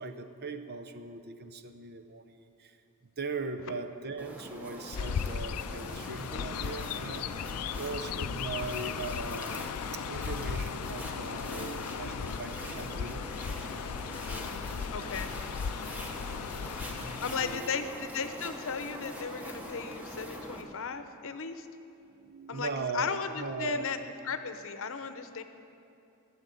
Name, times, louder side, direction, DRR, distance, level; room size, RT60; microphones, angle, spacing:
voice 1, 0.0-2.8 3.0-13.2 16.2-17.9 22.0-23.9, right 4 dB, 45° right, 8 dB, 0.7 m, -40 dB
sound 1, 4.2-20.6, equal, 5° right, 1.3 m, -43 dB
Chirp tweet, 4.9-17.6, left 6 dB, 80° left, 0.4 m, -37 dB
voice 2, 14.3-14.6 14.9-15.3 17.2-21.7 22.5-25.4, left 6 dB, 65° left, 9 dB, 0.8 m, -36 dB
14.0 x 7.2 x 9.2 m, 2.7 s
head